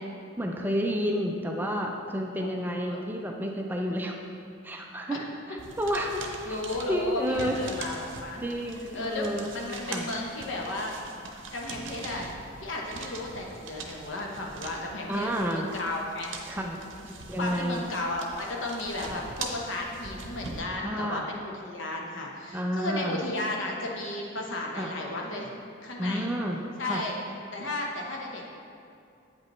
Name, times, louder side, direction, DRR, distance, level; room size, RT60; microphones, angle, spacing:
voice 1, 0.4-4.2 4.6-5.2 5.5-6.2 6.5-6.6 6.9-7.6 8.4-9.5 9.9-10.1 15.1-15.7 16.5-16.8 17.3-17.8 20.8-21.3 22.5-23.2 24.8-24.9 26.0-27.0, equal, 10° right, 1 dB, 0.4 m, -30 dB
sound 1, 5.6-20.6, right 3 dB, 80° right, 0.7 m, -42 dB
voice 2, 6.4-8.4 8.9-10.9 11.5-12.3 12.6-16.3 17.1-25.5 25.8-26.3 26.8-27.2 27.5-28.5, left 2 dB, 75° left, -1 dB, 1.0 m, -34 dB
8.5 x 5.2 x 3.1 m, 2.5 s
head